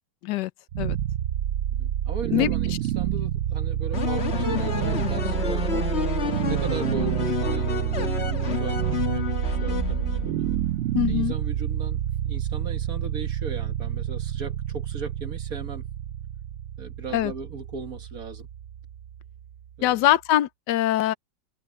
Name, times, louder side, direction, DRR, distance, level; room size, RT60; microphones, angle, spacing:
sound 1, 0.7-19.8, right 11 dB, 75° right, 0.7 m, -28 dB
voice 1, 1.7-5.9 6.4-10.3 11.1-15.9 16.8-18.5 19.8-20.1, right 5 dB, 55° right, 1.9 m, -38 dB
sound 2, 3.9-10.6, left 6 dB, 40° left, 1.6 m, -29 dB
voice 2, 10.9-11.3 17.1-17.3 19.8-21.1, left 14 dB, 75° left, 1.2 m, -22 dB
omnidirectional pair, 2.0 m